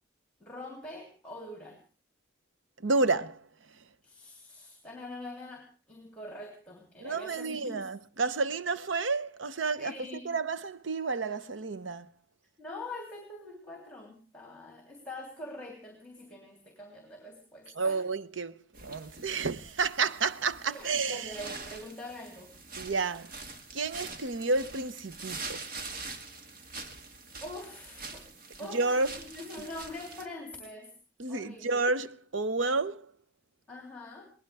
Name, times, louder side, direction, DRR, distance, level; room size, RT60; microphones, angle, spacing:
voice 1, 0.4-1.8 4.0-7.8 9.8-10.3 12.6-18.0 20.7-22.5 27.4-28.2 28.6-30.9 31.3-31.6 33.7-34.3, left 1 dB, 5° left, 3.2 m, -44 dB
voice 2, 2.8-3.5 7.0-12.1 17.8-21.4 22.8-23.4 23.7-25.6 28.7-29.1 31.2-33.1, right 3 dB, 75° right, 0.8 m, -30 dB
sound 1, 18.7-30.3, right 3 dB, 45° right, 1.9 m, -44 dB
23.0 x 18.5 x 3.4 m
head